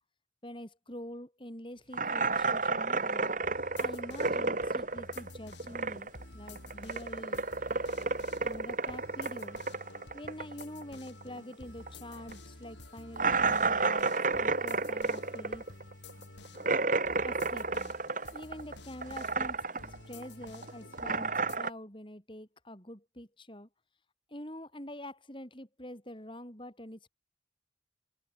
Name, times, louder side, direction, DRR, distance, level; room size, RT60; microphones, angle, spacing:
voice 1, 0.4-3.3 3.8-7.4 8.4-9.6 10.1-15.7 17.2-17.9 18.3-19.6 20.1-23.7 24.3-27.1, left 1 dB, 30° left, 6.7 m, -46 dB
sound 1, 1.9-6.2 6.5-11.5 11.8-11.9 12.3-12.4 13.2-18.7 19.0-20.0 20.2-21.7, right 3 dB, 45° right, 2.5 m, -31 dB
sound 2, 3.4-21.6, left 2 dB, 80° left, 4.7 m, -51 dB
head